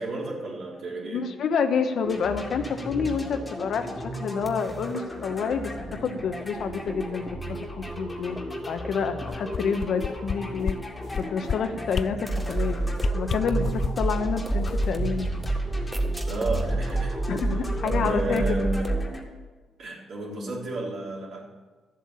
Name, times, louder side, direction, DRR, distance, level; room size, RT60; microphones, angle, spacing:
voice 1, 0.0-1.2 16.3-17.2 17.8-18.9 19.8-21.5, right 2 dB, 60° right, -3 dB, 4.0 m, -31 dB
voice 2, 1.1-5.7 6.0-8.4 8.7-10.8 11.2-12.8 13.1-15.3 17.3-18.4, left 6 dB, 65° left, 7 dB, 1.2 m, -28 dB
sound 1, 2.0-19.2, equal, 15° left, 2.3 m, -36 dB
sound 2, 2.5-2.6 3.0-3.1 3.4-4.0 4.5-4.6 4.9-5.0 5.3-5.9 6.4-6.5 6.9-7.0 7.3-7.9 8.4-8.5 8.8-8.9 9.2-9.8 12.3-19.1, right 2 dB, 10° right, 1.5 m, -28 dB
sound 3, 9.3-10.3 10.6-10.8 11.1-11.6 11.9-12.1 12.5-12.6 13.0-14.1 14.5-16.1 16.4-16.5, left 7 dB, 50° left, 0.3 m, -30 dB
13.0 x 7.8 x 7.1 m, 1.4 s
cardioid pair, 90°, 0 cm